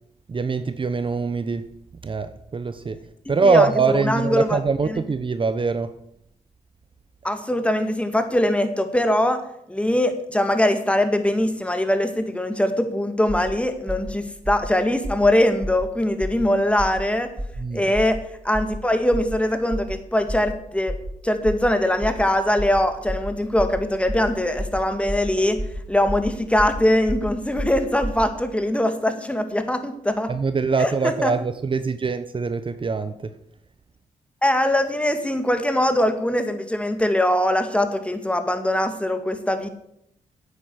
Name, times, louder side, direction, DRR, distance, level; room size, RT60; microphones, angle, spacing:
voice 1, 0.3-1.7 2.0-3.0 3.3-5.9 17.6-17.8 30.3-33.3, right 4 dB, 35° right, 0.9 m, -23 dB
voice 2, 3.4-4.6 4.9-5.0 7.2-9.4 9.7-17.3 17.7-18.2 18.4-21.0 21.2-25.6 25.9-30.3 30.8-31.3 34.4-39.7, left 1 dB, 10° left, 2.1 m, -22 dB
sound 1, 13.3-13.5 13.9-14.1 14.4-14.7 15.0-15.3 15.6-15.9 16.2-16.4 16.8-17.0 17.4-17.6 17.9-18.2 18.5-18.8 19.1-19.4 19.7-19.9 20.3-20.5 20.9-21.1 21.4-21.7 22.0-22.2 22.6-22.8 23.1-23.3 23.6-23.8 24.1-24.3 24.6-24.8 25.1-25.3 25.6-25.8 26.1-26.3 26.6-26.8 27.1-27.3 27.6-28.2, equal, 15° right, 2.0 m, -30 dB
10.0 x 8.6 x 8.1 m
cardioid pair, 65°, 14 cm